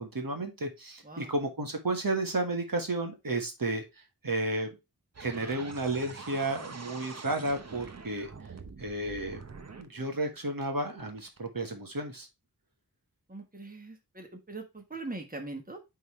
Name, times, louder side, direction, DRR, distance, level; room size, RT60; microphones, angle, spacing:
voice 1, 0.0-3.8 4.2-4.7 5.2-8.3 8.8-9.4 9.7-12.3, right 2 dB, 65° right, 4 dB, 1.5 m, -32 dB
voice 2, 1.0-1.3 13.3-15.8, right 2 dB, 25° right, 4 dB, 1.3 m, -41 dB
sound 1, 5.1-11.5, right 4 dB, 45° right, 0.8 m, -46 dB
9.3 x 3.8 x 3.1 m, 0.24 s
wide cardioid pair, 60°, 37 cm